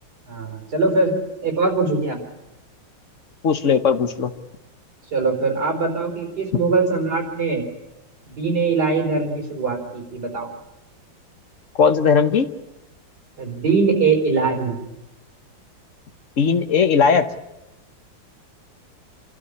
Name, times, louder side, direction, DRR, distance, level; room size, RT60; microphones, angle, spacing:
voice 1, 0.3-1.1 1.4-2.2 5.1-7.6 8.3-10.5 13.4-14.8, right 4 dB, 50° right, 1 dB, 5.1 m, -22 dB
voice 2, 3.4-4.3 11.8-12.5 16.4-17.3, left 6 dB, 45° left, 9 dB, 1.2 m, -17 dB
28.0 x 12.5 x 9.8 m, 0.98 s
omnidirectional pair, 2.2 m